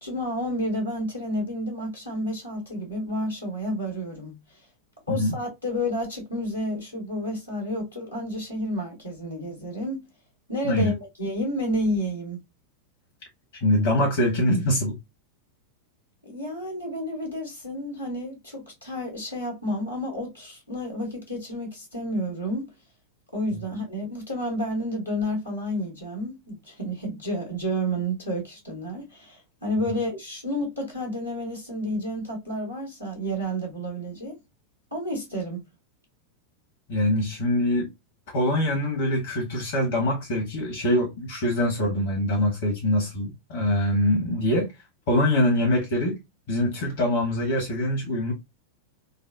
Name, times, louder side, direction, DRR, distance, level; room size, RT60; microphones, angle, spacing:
voice 1, 0.0-4.6 5.1-10.0 10.5-12.4 16.2-22.7 23.3-34.4 34.9-35.6, equal, 85° left, 1.6 m, -30 dB
voice 2, 13.6-15.0 36.9-37.9 38.3-44.7 45.1-46.2 46.5-48.3, left 1 dB, 55° left, 1.2 m, -24 dB
4.0 x 2.0 x 2.5 m
figure-of-eight pair, 90°, 0 cm